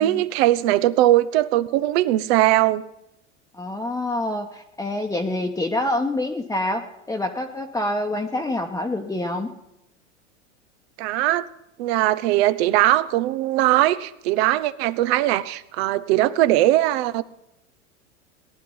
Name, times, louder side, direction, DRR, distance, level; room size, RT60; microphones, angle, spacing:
voice 1, 0.0-2.8 11.0-11.5 11.8-17.2, right 15 dB, 60° right, 14 dB, 1.0 m, -20 dB
voice 2, 3.5-9.5, left 1 dB, 10° left, 2 dB, 1.2 m, -26 dB
18.5 x 11.0 x 5.5 m, 0.86 s
hypercardioid pair, 95°, 37 cm